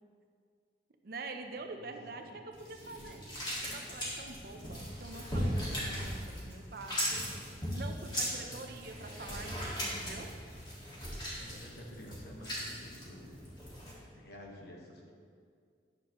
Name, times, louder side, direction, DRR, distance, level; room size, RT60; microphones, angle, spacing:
voice 1, 1.0-3.2 3.7-7.2 7.7-10.3, right 3 dB, 55° right, 5 dB, 0.6 m, -46 dB
voice 2, 1.7-2.4 2.8-3.2 8.4-8.6 11.3-13.4 14.1-15.1, equal, 65° left, -1 dB, 1.2 m, -51 dB
sound 1, 2.5-13.9, equal, 25° left, 1.8 m, -38 dB
9.9 x 6.6 x 3.0 m, 2.1 s
head